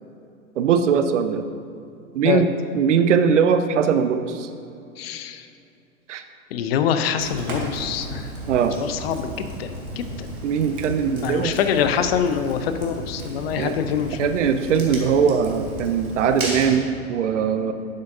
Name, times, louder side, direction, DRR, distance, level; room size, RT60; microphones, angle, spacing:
voice 1, 0.6-1.5 2.1-2.5 2.7-4.5 6.1-6.2 8.5-8.8 10.4-11.6 13.6-13.7 14.2-17.7, right 7 dB, 55° right, 9 dB, 0.7 m, -20 dB
voice 2, 5.0-5.4 6.5-8.2 8.8-9.3 9.6-9.7 10.0-10.1 11.2-14.3, left 8 dB, 45° left, 9 dB, 0.7 m, -24 dB
Fire, 7.2-16.8, right 1 dB, 80° right, 1.9 m, -34 dB
11.0 x 7.6 x 2.7 m, 2.6 s
figure-of-eight pair, 100°, 42 cm